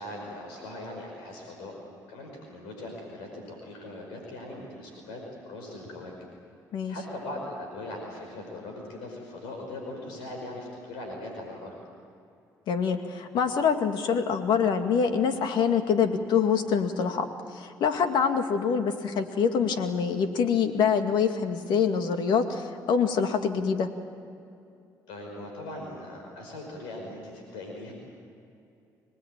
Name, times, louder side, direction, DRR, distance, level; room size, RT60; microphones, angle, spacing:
voice 1, 0.0-1.7 2.1-6.1 6.9-11.7 25.1-27.9, left 1 dB, 90° left, 1 dB, 5.4 m, -40 dB
voice 2, 12.7-17.3 17.5-23.9, left 6 dB, 70° left, 6 dB, 2.1 m, -25 dB
25.5 x 20.5 x 9.0 m, 2.6 s
supercardioid pair, 70°, 8 cm